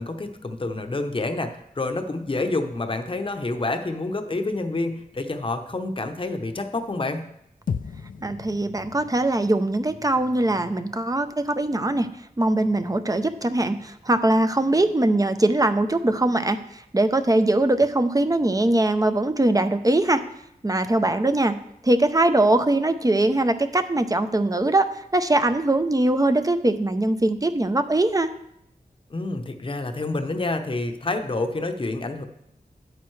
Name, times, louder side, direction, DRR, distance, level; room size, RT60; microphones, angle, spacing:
voice 1, 0.0-7.2 29.1-32.2, left 2 dB, 35° left, 6 dB, 0.8 m, -28 dB
sound 1, 7.7-12.0, left 6 dB, 60° left, 0.4 m, -37 dB
voice 2, 8.2-12.1 12.4-20.2 20.6-21.6 21.8-28.3, right 2 dB, 25° right, 9 dB, 0.6 m, -21 dB
9.0 x 8.2 x 3.2 m, 0.78 s
wide cardioid pair, 60°, 16 cm